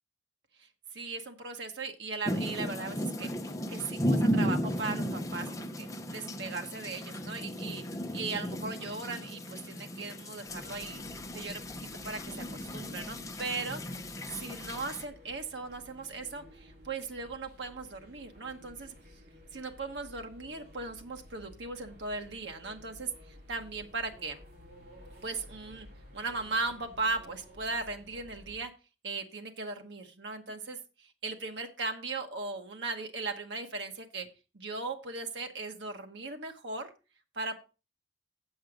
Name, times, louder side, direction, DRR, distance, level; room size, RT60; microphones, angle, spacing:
voice 1, 0.6-3.3 3.7-5.5 5.8-7.8 8.1-11.0 11.3-11.6 12.0-13.8 14.3-18.9 19.5-24.4 25.2-25.9 26.1-28.7 29.0-34.3 34.5-36.9 37.3-37.6, right 3 dB, 85° right, 4 dB, 1.1 m, -38 dB
sound 1, 2.3-15.0, equal, 15° left, 0.8 m, -35 dB
sound 2, 10.5-28.6, left 1 dB, 60° right, 3.6 m, -54 dB
7.8 x 7.8 x 4.9 m, 0.32 s
head